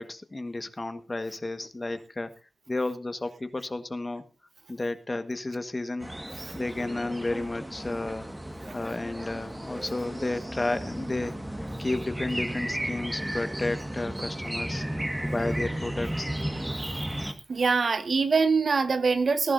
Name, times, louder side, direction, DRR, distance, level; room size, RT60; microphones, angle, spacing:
voice 1, 0.0-2.3 2.7-4.2 4.7-6.1 6.5-8.3 8.7-14.8 15.2-16.3, left 2 dB, 30° left, 1.4 m, -32 dB
sound 1, 6.0-17.3, right 1 dB, 10° right, 1.6 m, -34 dB
voice 2, 17.5-19.5, right 4 dB, 60° right, 1.1 m, -23 dB
20.5 x 11.0 x 2.6 m
cardioid pair, 55°, 0 cm